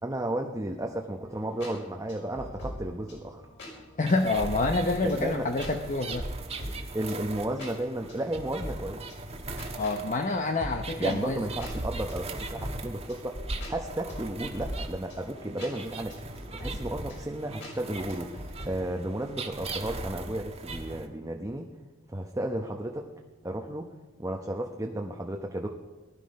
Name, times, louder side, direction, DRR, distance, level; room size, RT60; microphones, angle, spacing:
voice 1, 0.0-3.4 5.0-5.5 6.9-9.1 11.0-13.4 13.7-16.2 16.5-21.7 22.1-23.1 23.4-23.9 24.2-25.7, right 1 dB, 15° right, 2 dB, 0.9 m, -33 dB
sound 1, 1.3-18.7, equal, 65° left, 5.3 m, -43 dB
voice 2, 4.0-6.3 9.8-11.4, left 2 dB, 40° left, 5 dB, 0.8 m, -27 dB
sound 2, 4.1-21.1, right 2 dB, 30° right, 1.2 m, -39 dB
19.0 x 11.5 x 5.3 m, 1.2 s
head